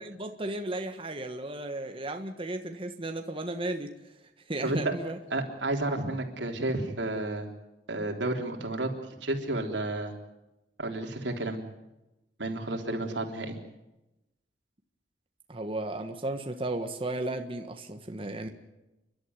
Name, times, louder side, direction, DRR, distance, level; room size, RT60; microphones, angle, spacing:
voice 1, 0.0-3.9 4.5-5.2 15.5-18.5, right 2 dB, 30° right, 5 dB, 1.5 m, -34 dB
voice 2, 4.6-4.9 5.3-7.5 7.9-8.9 9.2-10.1 10.8-11.6 12.4-13.6, right 2 dB, 85° right, 3 dB, 3.6 m, -31 dB
30.0 x 12.5 x 9.6 m, 0.98 s
head